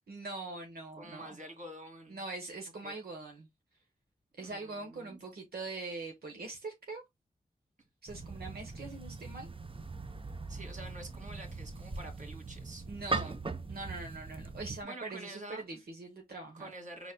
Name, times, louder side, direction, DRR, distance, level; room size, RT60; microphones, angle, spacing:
voice 1, 0.1-1.4 2.1-3.5 4.4-7.0 8.0-9.5 12.9-13.4 13.7-16.7, right 3 dB, 85° right, 1.1 m, -42 dB
voice 2, 1.0-2.2 2.8-2.9 4.4-5.2 10.5-12.8 13.1-13.4 14.8-15.8 16.5-17.1, right 1 dB, 55° right, 2.1 m, -47 dB
sound 1, 8.1-14.8, right 3 dB, 35° right, 0.7 m, -40 dB
5.4 x 4.1 x 2.2 m
cardioid pair, 45°, 16 cm